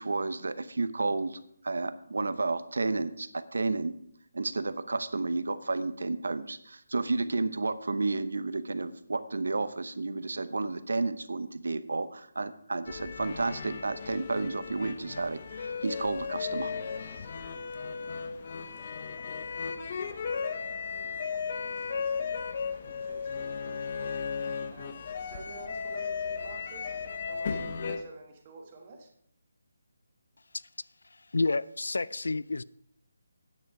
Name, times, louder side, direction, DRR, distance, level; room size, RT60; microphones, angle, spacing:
voice 1, 0.0-1.4 1.6-3.9 4.3-16.7, right 3 dB, 80° right, 13 dB, 0.8 m, -31 dB
sound 1, 12.9-28.0, left 5 dB, 35° left, 0.7 m, -35 dB
voice 2, 21.5-22.4 22.8-29.1, right 3 dB, 25° right, 2 dB, 1.4 m, -49 dB
voice 3, 31.1-32.6, left 3 dB, 85° left, 19 dB, 0.4 m, -30 dB
9.3 x 8.1 x 4.8 m, 0.69 s
hypercardioid pair, 170°, 0 cm